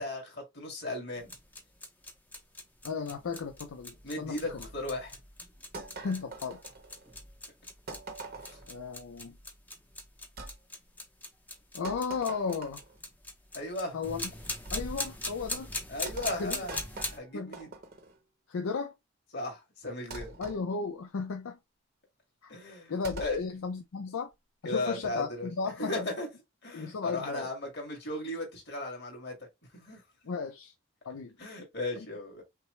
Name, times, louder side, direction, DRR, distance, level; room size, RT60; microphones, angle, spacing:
voice 1, 0.0-1.4 4.0-5.2 8.5-8.6 13.5-14.0 15.9-16.7 17.1-17.7 19.3-20.4 22.5-22.9 23.2-23.4 24.7-25.5 25.8-26.3 26.6-29.4 29.7-30.0 31.4-32.4, left 2 dB, 50° left, 1.9 m, -36 dB
sound 1, 1.1-17.2, left 2 dB, 10° left, 0.6 m, -41 dB
voice 2, 2.8-4.7 6.0-6.6 8.7-9.4 11.7-12.8 13.9-14.3 14.7-15.7 16.3-16.6 17.3-17.6 18.5-18.9 20.4-21.6 22.4-22.5 22.9-24.3 24.6-26.1 26.7-27.5 30.3-30.7 31.1-31.4 32.0-32.1, left 5 dB, 80° left, 0.5 m, -35 dB
sound 2, 5.7-7.2 7.9-8.7 10.4-10.6 11.8-13.0 14.7-15.1 16.1-18.2 20.1-20.6 23.0-23.4, right 2 dB, 45° right, 0.8 m, -43 dB
5.7 x 2.0 x 3.1 m
head